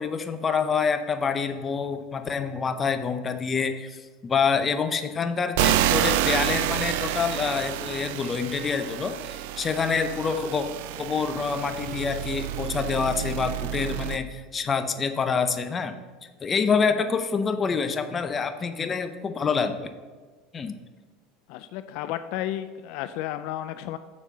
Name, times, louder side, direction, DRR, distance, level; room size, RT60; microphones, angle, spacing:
voice 1, 0.0-10.7 11.0-16.0 16.4-19.9 20.5-20.7, left 5 dB, 30° left, 9 dB, 0.7 m, -27 dB
sound 1, 5.6-14.2, right 13 dB, 75° right, 0.4 m, -28 dB
voice 2, 21.5-24.0, left 12 dB, 65° left, 11 dB, 0.3 m, -32 dB
7.2 x 4.4 x 6.7 m, 1.4 s
supercardioid pair, 105°, 0 cm